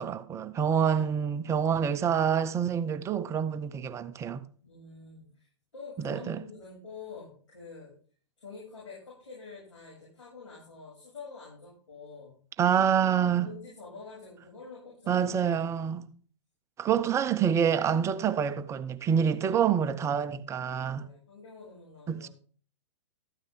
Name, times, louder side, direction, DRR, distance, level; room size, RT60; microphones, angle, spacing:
voice 1, 0.0-4.4 6.0-6.4 12.6-13.5 15.1-16.1 16.8-21.1 22.1-22.3, right 8 dB, 20° right, 0.6 m, -27 dB
voice 2, 0.6-1.0 4.6-7.9 8.4-12.4 13.2-15.2 15.5-16.1 19.4-19.6 20.9-22.3, left 4 dB, 75° left, 7.0 m, -47 dB
13.5 x 9.1 x 3.6 m
figure-of-eight pair, 115°, 16 cm